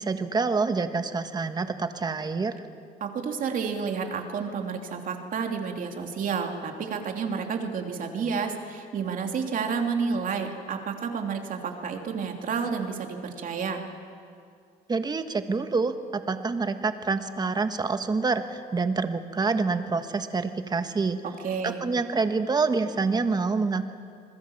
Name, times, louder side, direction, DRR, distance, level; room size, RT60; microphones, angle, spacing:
voice 1, 0.0-2.5 14.9-21.2 21.6-23.9, right 4 dB, 25° right, 9 dB, 1.5 m, -27 dB
voice 2, 3.0-13.8 21.4-21.8, right 5 dB, 55° right, 3 dB, 2.9 m, -30 dB
27.5 x 21.0 x 7.2 m, 2.4 s
cardioid pair, 110°, 17 cm